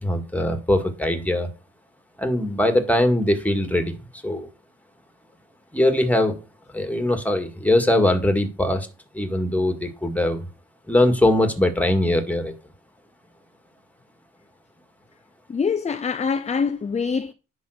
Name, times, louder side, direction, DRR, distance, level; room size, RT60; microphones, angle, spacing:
voice 1, 0.0-1.5 2.2-4.0 4.2-4.5 5.7-6.4 6.7-8.9 9.1-10.4 10.9-12.5, left 1 dB, 5° left, 1.9 m, -21 dB
voice 2, 15.5-17.3, left 5 dB, 25° left, 0.5 m, -24 dB
10.5 x 3.8 x 6.5 m
cardioid pair, 90°, 30 cm